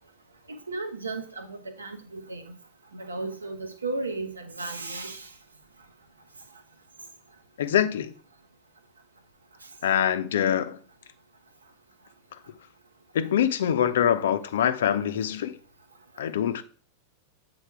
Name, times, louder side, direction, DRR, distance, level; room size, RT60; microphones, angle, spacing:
voice 1, 0.7-2.5 2.9-5.3, right 3 dB, 75° right, 1.1 m, -34 dB
voice 2, 7.6-8.1 9.8-10.8 13.1-15.6 16.2-16.6, left 9 dB, 60° left, 0.6 m, -24 dB
7.9 x 4.0 x 4.6 m
figure-of-eight pair, 90°, 0 cm